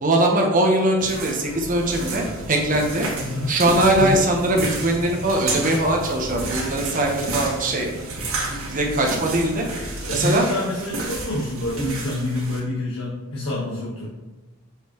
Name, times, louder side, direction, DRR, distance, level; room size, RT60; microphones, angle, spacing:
voice 1, 0.0-3.1 3.5-7.9 8.7-9.6 10.1-10.4, right 1 dB, 40° right, 1 dB, 1.1 m, -21 dB
sound 1, 1.0-12.6, right 3 dB, 80° right, 1.7 m, -32 dB
sound 2, 1.4-10.3, equal, 65° right, 1.0 m, -37 dB
voice 2, 3.2-3.5 4.0-4.2 10.1-14.1, left 1 dB, 80° left, -6 dB, 1.4 m, -27 dB
6.7 x 5.2 x 3.1 m, 1.2 s
head